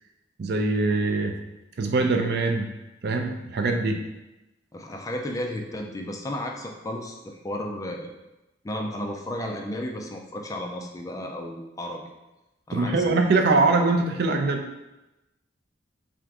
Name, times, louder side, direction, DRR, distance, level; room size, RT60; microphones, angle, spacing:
voice 1, 0.4-1.3 1.8-2.7 3.0-4.0 12.7-14.8, right 3 dB, 60° right, 4 dB, 0.4 m, -23 dB
voice 2, 4.7-8.1 8.6-12.0 12.7-13.1, left 1 dB, 20° left, 2 dB, 0.4 m, -33 dB
3.6 x 2.5 x 4.6 m, 0.99 s
head